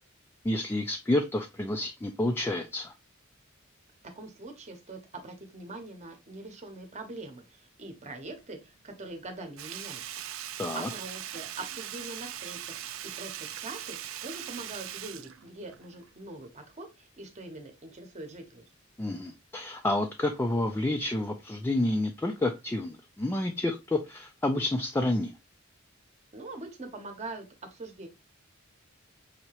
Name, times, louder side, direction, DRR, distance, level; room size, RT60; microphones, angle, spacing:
voice 1, 0.4-2.9 10.6-10.9 19.0-25.3, left 1 dB, 10° left, 4 dB, 0.3 m, -29 dB
voice 2, 4.1-10.0 10.5-18.7 26.3-27.4 27.7-28.1, right 2 dB, 35° right, 5 dB, 0.9 m, -43 dB
Sink (filling or washing), 9.6-16.1 16.4-16.5, right 11 dB, 70° right, 0.4 m, -40 dB
5.4 x 2.8 x 2.9 m, 0.25 s
head